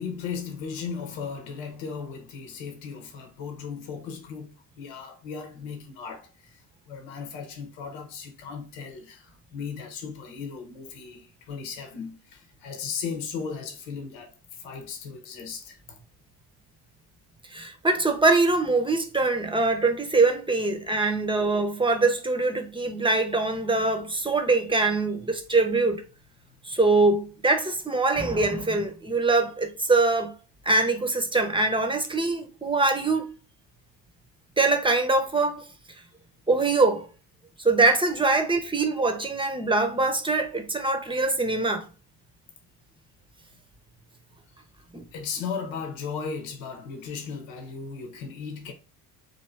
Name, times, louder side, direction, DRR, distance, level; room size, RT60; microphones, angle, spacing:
voice 1, 0.0-16.0 45.1-48.7, left 6 dB, 70° left, 1.0 m, -36 dB
voice 2, 17.5-26.0 26.6-30.3 30.6-33.3 34.6-35.7 36.5-37.1 37.6-41.9 44.9-45.0, right 3 dB, 10° right, 0.8 m, -23 dB
3.4 x 2.7 x 4.4 m
hypercardioid pair, 65°, 47 cm